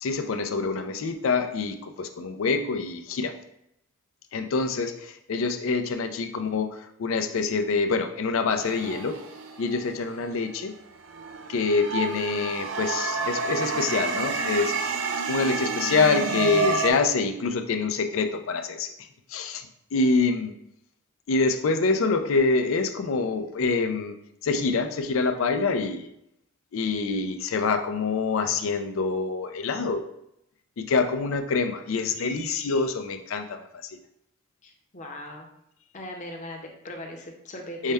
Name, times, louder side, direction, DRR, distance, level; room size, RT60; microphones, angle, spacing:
voice 1, 0.0-3.3 4.3-9.2 9.6-10.7 11.5-14.7 15.3-18.9 19.3-20.5 21.3-24.1 24.4-26.1 26.7-30.0 30.8-33.6 37.8-37.9, left 4 dB, 90° left, 7 dB, 0.4 m, -26 dB
sound 1, 8.6-10.5 11.0-16.9, right 4 dB, 70° right, 0.5 m, -29 dB
voice 2, 34.6-35.5 35.9-37.9, left 1 dB, 40° left, 1 dB, 0.7 m, -39 dB
5.5 x 2.2 x 3.4 m, 0.79 s
head